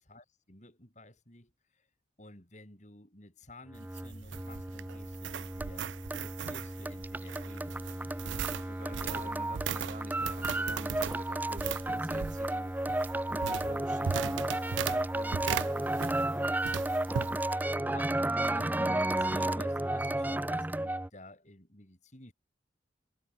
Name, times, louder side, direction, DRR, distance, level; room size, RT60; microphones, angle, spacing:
voice 1, 0.1-1.9 2.2-5.9 6.2-8.2 9.0-9.4 17.8-22.3, left 1 dB, 35° left, 5.5 m, -51 dB
sound 1, 3.7-21.1, right 1 dB, 10° right, 0.5 m, -33 dB
sound 2, 3.7-16.4 16.6-17.3, right 8 dB, 70° right, 0.4 m, -38 dB
voice 2, 8.5-12.8 13.3-16.6, right 1 dB, 40° right, 7.1 m, -49 dB
head